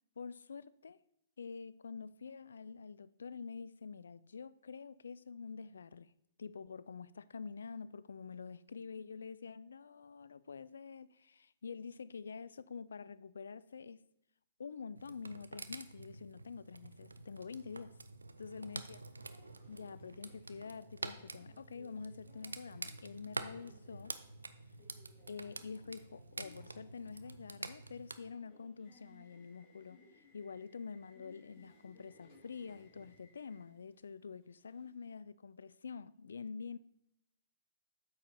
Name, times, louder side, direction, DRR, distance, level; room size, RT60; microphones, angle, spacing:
voice 1, 0.2-1.0 1.4-6.1 6.4-14.0 14.6-17.9 18.4-19.4 19.7-24.2 25.3-30.0 30.3-36.8, left 5 dB, 70° left, 0.3 m, -47 dB
sound 1, 15.0-28.2, right 3 dB, 80° right, 0.5 m, -48 dB
Subway metro underground, 19.2-35.1, left 2 dB, 30° left, 2.6 m, -65 dB
8.5 x 4.8 x 4.3 m
figure-of-eight pair, 115°, 0 cm